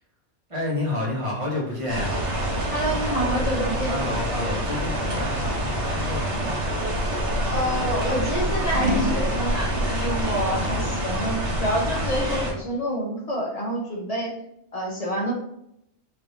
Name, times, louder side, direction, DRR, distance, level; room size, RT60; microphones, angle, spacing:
voice 1, 0.5-2.1 3.8-6.6 10.3-10.9, left 2 dB, 30° right, -5 dB, 0.9 m, -30 dB
Scissors, 1.3-7.5 8.1-9.2, equal, 50° right, 0.7 m, -33 dB
sound 1, 1.9-12.5, equal, 70° right, 1.2 m, -26 dB
voice 2, 2.7-4.0 7.5-14.3 14.7-15.3, equal, 40° left, -3 dB, 0.6 m, -27 dB
3.1 x 2.7 x 2.8 m, 0.77 s
omnidirectional pair, 1.3 m